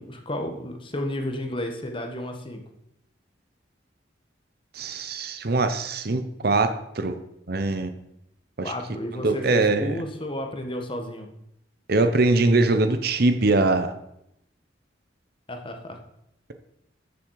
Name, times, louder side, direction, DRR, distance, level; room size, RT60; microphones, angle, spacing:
voice 1, 0.0-2.6 8.6-11.3 15.5-16.0, left 1 dB, 25° left, 4 dB, 1.4 m, -32 dB
voice 2, 4.7-7.2 7.5-7.9 8.6-8.7 9.2-9.9 11.9-14.0, right 2 dB, 55° right, 9 dB, 0.8 m, -22 dB
13.5 x 7.1 x 4.8 m, 0.79 s
head